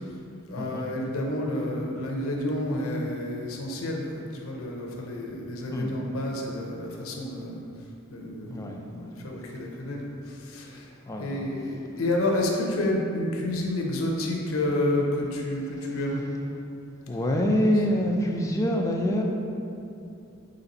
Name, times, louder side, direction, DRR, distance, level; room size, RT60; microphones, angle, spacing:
voice 1, 0.5-7.6 8.1-10.9 11.2-16.2, left 1 dB, 80° left, -1 dB, 0.6 m, -30 dB
voice 2, 5.7-6.0 8.5-9.1 11.1-11.5 17.1-19.2, equal, 15° left, 0 dB, 0.3 m, -26 dB
4.0 x 3.3 x 4.0 m, 2.7 s
head